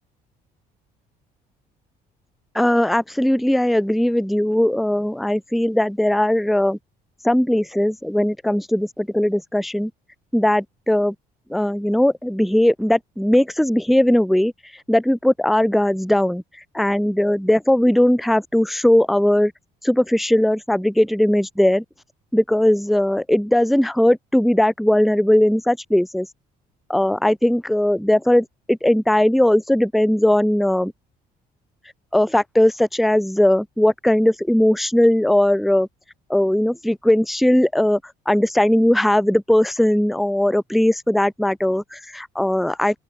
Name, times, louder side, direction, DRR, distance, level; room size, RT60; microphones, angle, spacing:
voice 1, 2.5-6.8 7.2-9.9 10.3-11.1 11.5-14.5 14.9-16.4 16.7-19.5 19.8-21.8 22.3-26.3 26.9-30.9 32.1-35.9 36.3-38.0 38.3-43.0, left 1 dB, ahead, 0.3 m, -18 dB
open air
cardioid pair, 110°, 17 cm